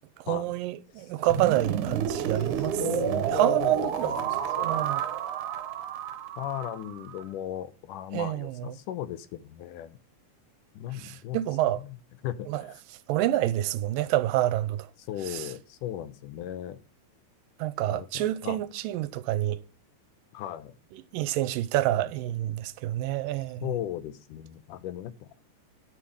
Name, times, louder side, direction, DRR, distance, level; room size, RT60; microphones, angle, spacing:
voice 1, 0.3-2.8 3.1-4.1 4.6-5.0 8.1-8.7 10.9-11.8 12.5-12.6 13.1-14.9 15.3-15.5 17.6-19.6 21.1-23.6, right 14 dB, 80° right, 2.4 m, -28 dB
sound 1, 1.3-7.2, right 9 dB, 65° right, 2.4 m, -30 dB
voice 2, 2.8-4.9 6.4-10.0 10.7-11.4 11.8-12.0 12.2-12.8 15.1-16.8 17.8-18.6 20.3-20.7 21.9-22.0 23.6-25.3, left 12 dB, 75° left, 2.2 m, -36 dB
10.0 x 8.5 x 6.3 m
omnidirectional pair, 4.0 m